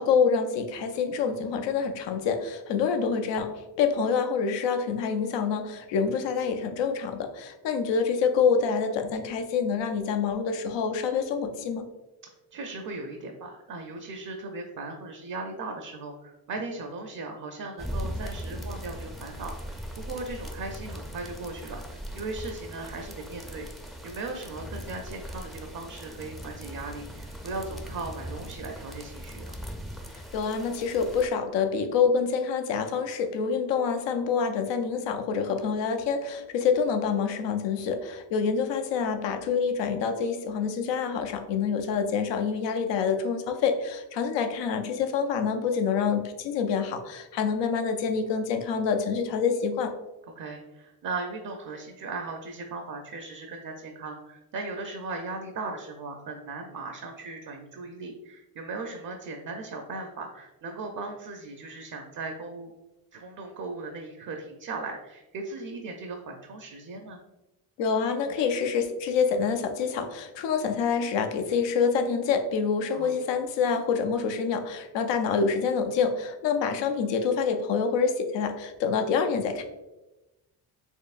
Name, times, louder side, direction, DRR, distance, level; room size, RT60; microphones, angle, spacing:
voice 1, 0.0-11.9 30.1-49.9 67.8-79.6, left 6 dB, 85° left, 6 dB, 0.6 m, -27 dB
voice 2, 12.5-23.7 24.0-29.6 47.6-47.7 50.4-62.7 63.1-67.2 72.9-73.1, right 3 dB, 50° right, 3 dB, 0.6 m, -38 dB
sound 1, 17.8-31.3, equal, ahead, 0.4 m, -39 dB
4.5 x 3.0 x 2.4 m, 1.0 s
cardioid pair, 90°, 42 cm